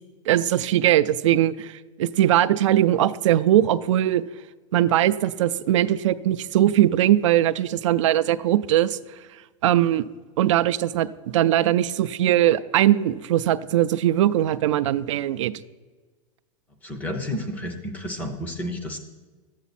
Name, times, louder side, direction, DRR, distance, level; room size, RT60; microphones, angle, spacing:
voice 1, 0.3-4.2 4.7-9.0 9.6-10.0 10.4-15.5, right 12 dB, 65° right, 13 dB, 0.4 m, -20 dB
voice 2, 16.8-19.0, left 1 dB, 10° left, 6 dB, 0.5 m, -31 dB
11.5 x 8.1 x 4.2 m, 1.3 s
supercardioid pair, 175°, 17 cm